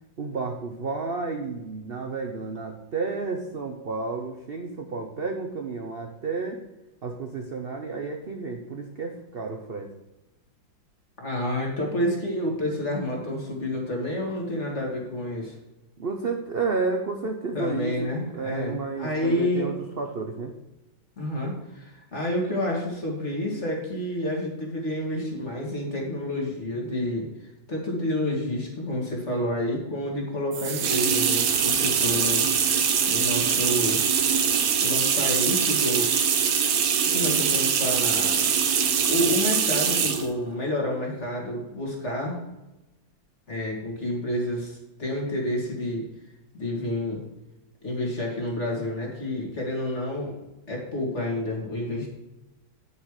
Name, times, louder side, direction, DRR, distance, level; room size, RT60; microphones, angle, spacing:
voice 1, 0.2-6.6 7.0-9.9 16.0-20.5, right 4 dB, 50° right, 3 dB, 0.7 m, -31 dB
voice 2, 11.2-15.5 17.5-19.7 21.2-27.3 27.7-32.5 33.1-34.0 34.8-36.4 37.1-38.5 39.0-42.4 43.5-46.1 46.5-47.2 47.8-50.4 50.7-52.1, left 1 dB, 35° left, -1 dB, 2.6 m, -29 dB
sound 1, 30.5-40.3, right 7 dB, 85° right, 1.9 m, -23 dB
9.6 x 6.9 x 4.8 m, 0.98 s
omnidirectional pair, 2.2 m